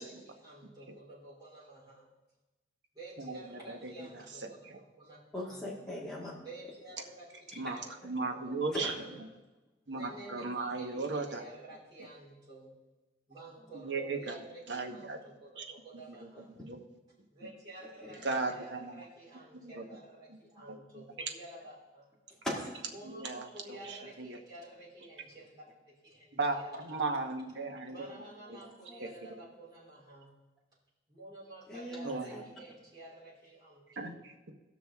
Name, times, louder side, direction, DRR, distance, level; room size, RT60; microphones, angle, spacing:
voice 1, 0.0-2.1 2.9-5.2 5.5-5.7 6.4-7.9 8.2-8.8 9.0-9.2 9.9-12.7 13.3-16.5 17.3-18.2 18.5-22.1 22.9-27.3 27.9-30.4 31.1-34.1, right 2 dB, 25° right, -9 dB, 4.2 m, -51 dB
voice 2, 3.2-4.2 4.7-4.8 7.6-8.9 9.9-11.4 13.7-14.4 14.7-15.2 15.6-15.7 16.1-16.3 16.6-16.8 18.2-19.0 19.6-19.8 20.3-20.4 20.7-20.8 23.0-24.4 26.3-28.1 28.5-28.6 29.0-29.1 32.0-32.3 34.0-34.5, right 3 dB, 85° right, 4 dB, 1.1 m, -36 dB
voice 3, 5.3-6.3 7.5-7.6 8.7-9.0 16.5-16.6 17.8-18.3 19.3-19.5 22.3-22.7 28.2-29.1 31.7-32.4, equal, 5° left, -6 dB, 1.8 m, -40 dB
18.0 x 6.2 x 3.5 m, 1.1 s
head